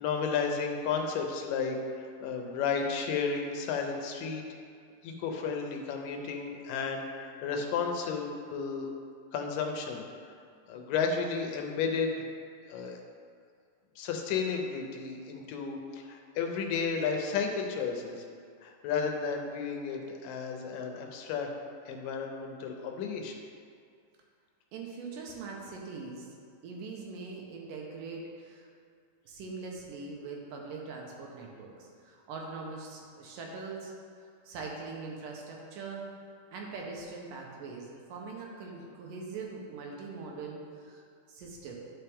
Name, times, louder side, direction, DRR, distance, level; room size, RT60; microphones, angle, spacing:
voice 1, 0.0-4.4 5.0-8.9 9.3-10.0 10.7-12.1 12.7-13.0 14.0-18.2 18.6-21.5 21.9-23.4, left 5 dB, 80° left, 2 dB, 2.3 m, -33 dB
voice 2, 24.7-26.3 26.6-28.7 29.2-33.9 34.5-36.1 36.5-41.0 41.3-41.8, right 4 dB, 75° right, -1 dB, 2.6 m, -42 dB
10.5 x 5.6 x 3.5 m, 2.3 s
omnidirectional pair, 4.0 m